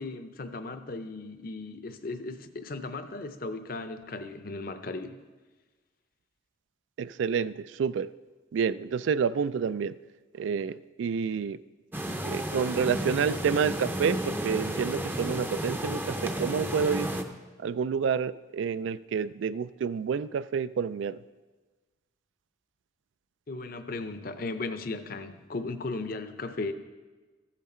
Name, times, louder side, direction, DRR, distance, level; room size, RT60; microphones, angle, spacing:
voice 1, 0.0-5.2 23.5-26.7, left 3 dB, 50° left, 9 dB, 0.6 m, -36 dB
voice 2, 7.0-8.1 8.5-10.0 10.3-11.6 12.2-17.1 17.6-21.2, right 6 dB, 75° right, 17 dB, 0.3 m, -29 dB
sound 1, 11.9-17.2, right 1 dB, 10° right, 0.5 m, -32 dB
14.0 x 7.3 x 4.3 m, 1.3 s
head